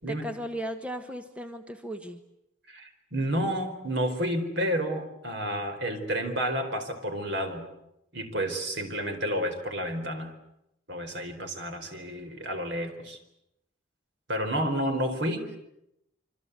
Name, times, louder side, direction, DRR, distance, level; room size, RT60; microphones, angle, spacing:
voice 1, 0.1-2.2, equal, 5° right, 7 dB, 1.2 m, -36 dB
voice 2, 2.7-7.7 8.1-10.3 10.9-13.2 14.3-15.6, equal, 60° right, 6 dB, 4.4 m, -30 dB
26.5 x 25.5 x 8.2 m, 0.83 s
head